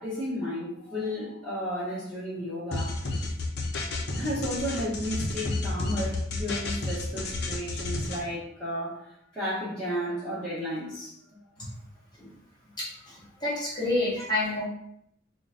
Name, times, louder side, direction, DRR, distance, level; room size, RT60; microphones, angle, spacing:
voice 1, 0.0-3.0 4.2-11.4, equal, 5° left, -12 dB, 0.9 m, -33 dB
sound 1, 2.7-8.2, left 2 dB, 55° left, 0.5 m, -31 dB
voice 2, 12.8-14.6, left 2 dB, 20° left, -6 dB, 1.2 m, -29 dB
3.8 x 2.2 x 3.6 m, 0.73 s
head